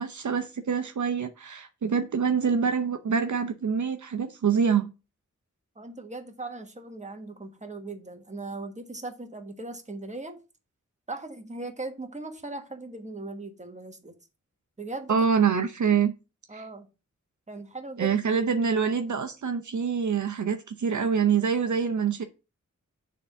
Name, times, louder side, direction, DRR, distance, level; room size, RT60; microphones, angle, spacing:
voice 1, 0.0-4.9 15.1-16.1 16.5-16.6 18.0-22.2, right 6 dB, 70° right, 0.7 m, -25 dB
voice 2, 5.7-10.4 11.1-14.1 14.8-15.2 16.5-16.9 17.5-18.1, right 2 dB, 25° right, 1.3 m, -38 dB
6.7 x 3.7 x 5.4 m
wide cardioid pair, 65°, 31 cm